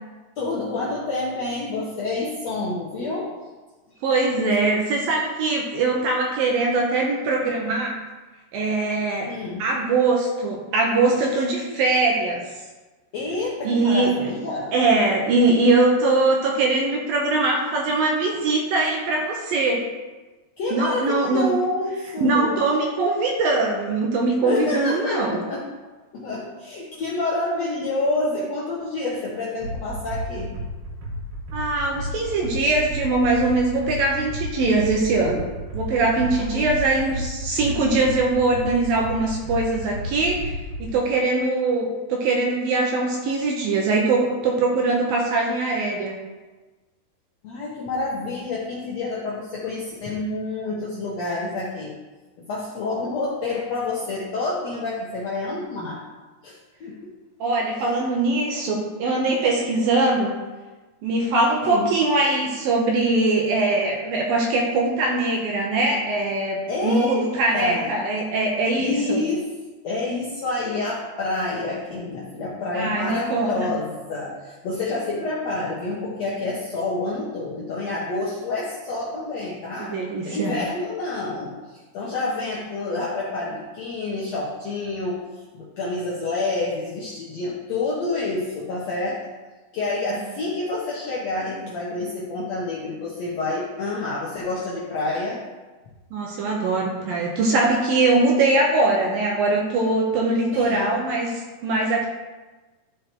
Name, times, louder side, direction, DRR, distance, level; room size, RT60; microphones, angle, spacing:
voice 1, 0.4-3.3 9.3-9.7 13.1-14.7 20.6-22.6 24.4-25.7 26.1-30.5 36.4-36.7 47.4-51.9 52.5-56.0 56.4-56.5 56.8-57.1 57.8-58.0 61.6-61.9 66.7-67.2 67.5-67.9 68.8-69.4 69.8-79.9 80.2-85.2 85.5-89.2 89.7-95.4 100.5-100.9, left 2 dB, 85° left, -6 dB, 1.4 m, -28 dB
voice 2, 4.0-8.0 8.5-12.4 13.6-14.1 14.7-19.8 20.7-21.5 22.2-25.4 31.5-35.5 35.7-40.5 40.8-46.1 57.4-60.3 61.0-69.2 72.7-73.7 79.8-80.5 96.1-102.1, right 3 dB, 70° right, -1 dB, 2.3 m, -22 dB
sound 1, 29.6-40.9, equal, 40° right, 2.0 m, -32 dB
13.0 x 5.1 x 4.5 m, 1.2 s
omnidirectional pair, 5.0 m